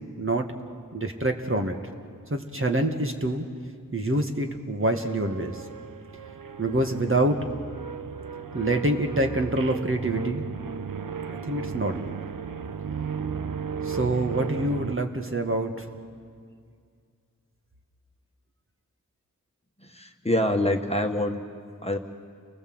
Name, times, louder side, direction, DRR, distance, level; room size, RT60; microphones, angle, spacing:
voice 1, 0.2-0.5 0.9-1.8 2.3-3.5 3.9-5.6 6.6-7.5 8.5-10.4 11.3-12.1 13.8-15.9, right 1 dB, 40° right, 4 dB, 2.0 m, -26 dB
sound 1, 4.8-15.0, right 6 dB, 80° right, 0.9 m, -35 dB
voice 2, 19.8-21.4 21.8-22.0, left 1 dB, 20° left, 4 dB, 1.6 m, -25 dB
29.5 x 19.5 x 7.9 m, 2.2 s
wide cardioid pair, 50°, 33 cm